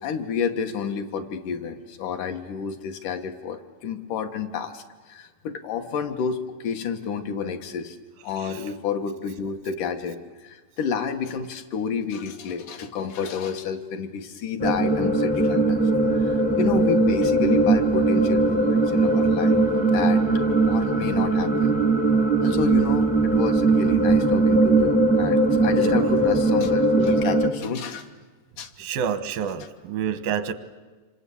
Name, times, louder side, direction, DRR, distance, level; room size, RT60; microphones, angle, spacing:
voice 1, 0.0-8.0 8.2-15.8 16.1-19.6 19.9-20.2 20.7-21.8 22.4-28.1 28.6-28.7, left 6 dB, 70° left, 5 dB, 2.8 m, -30 dB
sound 1, 14.6-27.5, right 2 dB, 5° left, 0.7 m, -20 dB
voice 2, 25.7-26.1 28.8-30.5, right 8 dB, 85° right, 11 dB, 3.0 m, -29 dB
27.0 x 25.5 x 8.5 m, 1.3 s
omnidirectional pair, 4.0 m